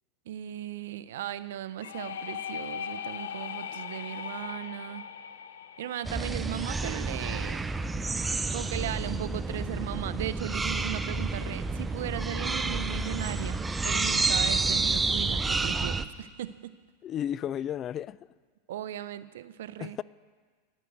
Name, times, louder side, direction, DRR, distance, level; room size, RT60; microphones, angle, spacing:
voice 1, 0.3-5.0 5.8-7.7 8.5-16.8 18.7-20.0, right 11 dB, 80° right, 0.6 m, -37 dB
sound 1, 1.8-7.4, left 8 dB, 90° left, 0.6 m, -39 dB
sound 2, 6.0-16.0, right 3 dB, 15° right, 0.6 m, -29 dB
voice 2, 17.0-18.2 19.8-20.0, left 10 dB, 35° left, 0.3 m, -33 dB
11.5 x 9.9 x 8.1 m
hypercardioid pair, 115°, 0 cm